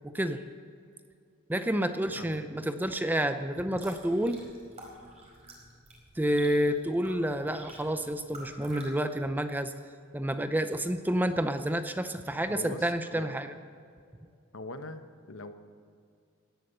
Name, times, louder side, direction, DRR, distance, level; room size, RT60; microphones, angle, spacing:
voice 1, 0.0-0.4 1.5-4.4 6.2-9.7 10.1-13.5, right 1 dB, 10° right, 9 dB, 0.6 m, -29 dB
sound 1, 3.5-8.9, right 1 dB, 35° right, 4.8 m, -50 dB
voice 2, 12.5-13.4 14.5-15.5, left 2 dB, 70° left, 8 dB, 1.1 m, -42 dB
17.5 x 11.0 x 6.8 m, 2.3 s
head